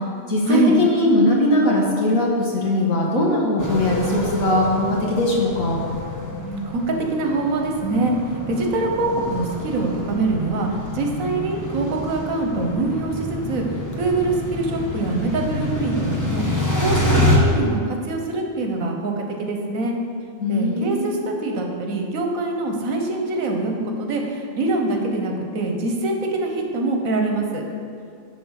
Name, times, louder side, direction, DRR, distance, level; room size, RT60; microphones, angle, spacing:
voice 1, 0.3-5.8 20.4-21.1, left 1 dB, 85° left, -2 dB, 1.9 m, -20 dB
sound 1, 3.6-17.4, left 1 dB, 15° left, 1.0 m, -27 dB
voice 2, 6.4-8.1 8.5-10.7 10.9-13.6 14.0-16.4 16.8-19.9 20.5-27.6, right 2 dB, 80° right, 2 dB, 1.5 m, -24 dB
11.0 x 4.0 x 6.4 m, 2.3 s
omnidirectional pair, 1.4 m